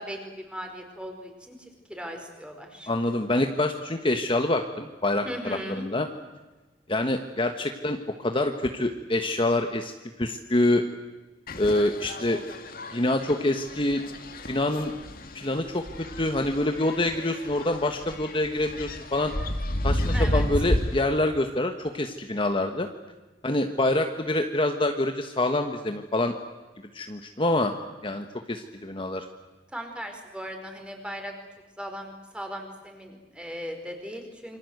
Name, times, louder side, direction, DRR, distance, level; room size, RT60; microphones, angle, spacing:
voice 1, 0.0-2.9 5.2-5.8 20.1-20.4 29.7-31.3 31.8-34.6, equal, 5° right, 4 dB, 4.9 m, -38 dB
voice 2, 2.9-6.1 6.9-9.9 10.2-10.8 11.6-12.4 12.9-14.0 14.5-14.9 15.3-19.3 19.8-22.9 23.4-26.3 26.9-27.7 28.0-29.3, left 1 dB, 30° left, 5 dB, 1.3 m, -26 dB
sound 1, 11.5-21.0, left 1 dB, 55° left, 2.3 m, -32 dB
27.5 x 24.5 x 8.1 m, 1.2 s
head